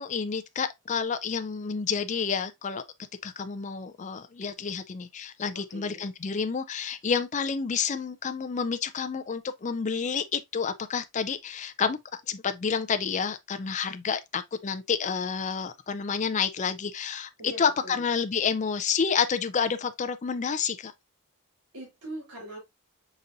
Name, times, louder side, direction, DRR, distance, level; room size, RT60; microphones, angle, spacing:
voice 1, 0.0-2.8 3.2-12.0 12.3-17.3 17.6-20.9, left 6 dB, 35° left, 0.4 m, -29 dB
voice 2, 5.5-6.1 17.4-18.0 21.7-22.6, right 1 dB, 85° right, 2.8 m, -42 dB
5.2 x 4.1 x 2.4 m
head